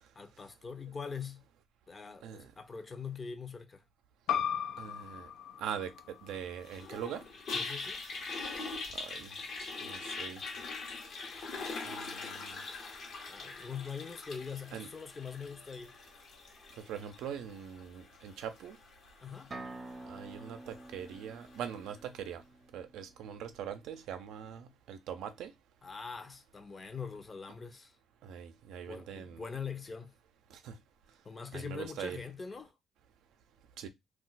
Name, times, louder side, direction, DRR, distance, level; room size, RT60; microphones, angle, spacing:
voice 1, 0.2-1.4 1.9-3.8 7.5-8.0 13.3-16.0 19.2-19.6 25.8-28.0 28.9-30.1 31.2-32.7, left 6 dB, 35° left, 0.6 m, -43 dB
sound 1, 4.3-9.4, left 8 dB, 85° left, 0.3 m, -39 dB
voice 2, 4.8-5.3 5.6-7.2 8.9-9.3 9.8-10.4 11.8-12.6 14.7-14.9 16.8-18.8 20.1-22.4 22.7-25.5 28.2-29.4 30.5-30.8 31.5-32.2 33.8-33.9, right 8 dB, 85° right, 0.4 m, -42 dB
Toilet flush, 6.7-21.9, left 3 dB, 65° left, 0.9 m, -43 dB
sound 2, 19.5-23.3, right 2 dB, 30° right, 0.5 m, -48 dB
2.3 x 2.1 x 3.9 m
cardioid pair, 90°, 0 cm